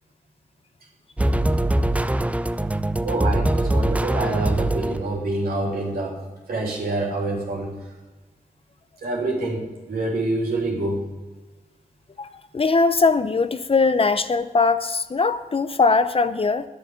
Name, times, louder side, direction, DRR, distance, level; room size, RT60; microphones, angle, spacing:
sound 1, 1.2-5.3, right 1 dB, 10° right, 0.5 m, -22 dB
voice 1, 3.0-6.2 6.5-7.7 9.0-11.0, right 2 dB, 80° right, -2 dB, 3.3 m, -26 dB
voice 2, 12.5-16.6, left 4 dB, 40° left, 11 dB, 0.7 m, -20 dB
9.7 x 8.1 x 7.7 m, 1.2 s
cardioid pair, 60°, 15 cm